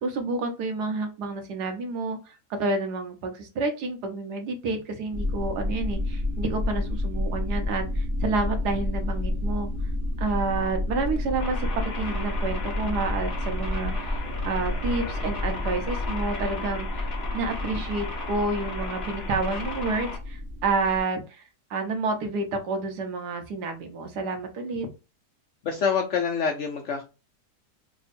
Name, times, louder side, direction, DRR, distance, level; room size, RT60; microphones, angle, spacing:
voice 1, 0.0-9.7 10.2-11.7 11.9-21.4 21.7-24.9, right 3 dB, 75° right, 5 dB, 1.4 m, -29 dB
sound 1, 5.1-21.0, left 1 dB, 40° right, 1.0 m, -30 dB
sound 2, 11.4-20.2, left 2 dB, 45° left, 1.1 m, -35 dB
voice 2, 25.6-27.0, left 6 dB, 65° left, 3 dB, 0.7 m, -26 dB
3.5 x 2.2 x 4.1 m, 0.30 s
omnidirectional pair, 1.8 m